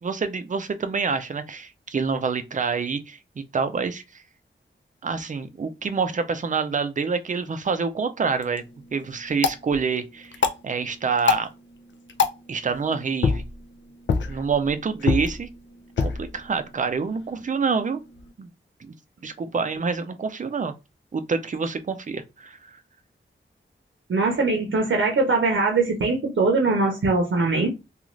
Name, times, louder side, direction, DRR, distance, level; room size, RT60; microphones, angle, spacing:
voice 1, 0.0-3.2 3.5-4.0 5.0-8.6 8.9-10.3 10.6-11.5 12.5-13.5 14.3-15.5 16.0-18.0 18.4-18.5 18.8-18.9 19.2-20.7 21.1-22.7, right 5 dB, 40° right, 0.4 m, -27 dB
sound 1, 8.2-18.3, left 5 dB, 65° left, 0.4 m, -29 dB
voice 2, 24.1-27.7, right 3 dB, 75° right, 0.7 m, -21 dB
2.5 x 2.4 x 3.1 m
wide cardioid pair, 110°, 20 cm